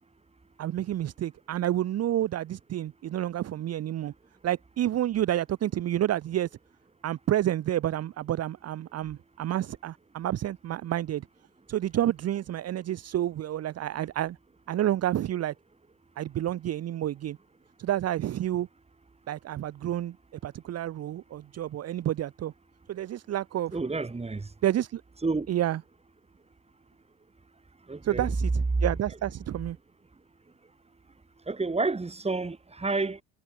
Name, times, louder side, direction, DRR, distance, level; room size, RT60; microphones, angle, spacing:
voice 1, 0.6-4.1 4.4-6.5 7.0-11.3 11.7-14.4 14.7-15.5 16.2-17.4 17.8-18.7 19.3-20.2 20.4-22.5 22.9-23.8 24.6-25.0 25.5-25.8 28.0-29.8, right 12 dB, 45° right, 1.2 m, -29 dB
voice 2, 23.7-24.5 25.2-25.5 27.9-28.3 28.8-28.9 31.5-33.2, right 3 dB, 15° right, 6.7 m, -29 dB
supercardioid pair, 90°, 36 cm